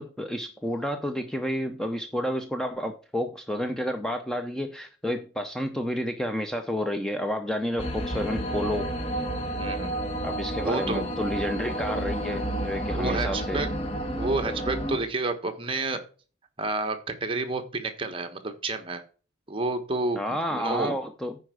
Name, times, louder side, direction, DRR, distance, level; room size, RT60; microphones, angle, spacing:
voice 1, 0.0-8.9 10.2-13.6 20.2-21.4, equal, 5° left, 5 dB, 0.6 m, -30 dB
sound 1, 7.8-15.0, right 1 dB, 30° left, 1.4 m, -30 dB
voice 2, 9.6-9.9 10.6-11.0 12.9-13.7 14.2-16.0 16.6-19.0 19.5-20.2 20.5-21.0, right 3 dB, 25° right, 7 dB, 1.2 m, -29 dB
9.7 x 4.5 x 6.3 m, 0.38 s
head